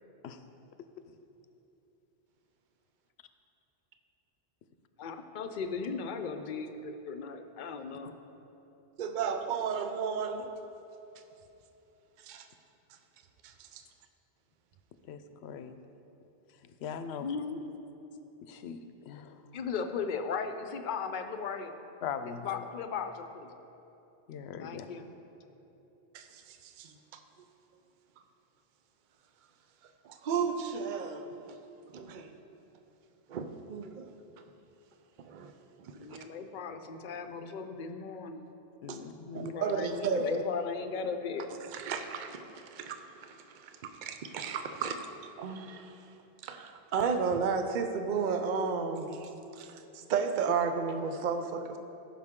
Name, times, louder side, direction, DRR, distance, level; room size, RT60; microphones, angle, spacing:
voice 1, 5.0-8.1 17.1-17.7 19.5-21.8 22.3-23.5 24.6-25.1 36.0-38.4 39.3-41.5, left 5 dB, 55° left, 7 dB, 0.7 m, -37 dB
voice 2, 9.0-10.5 12.2-12.5 13.4-13.8 26.1-26.9 30.0-31.6 31.9-32.3 33.3-34.1 35.2-35.5 35.8-36.2 38.9-39.0 39.3-40.4 41.6-45.1 45.4-46.1 46.4-51.8, right 5 dB, 55° right, 6 dB, 0.7 m, -33 dB
voice 3, 15.1-15.8 16.6-17.3 18.4-19.4 22.0-22.6 24.3-24.9 38.8-39.6, left 7 dB, 85° left, 9 dB, 0.8 m, -41 dB
15.0 x 5.9 x 3.7 m, 3.0 s
omnidirectional pair, 1.1 m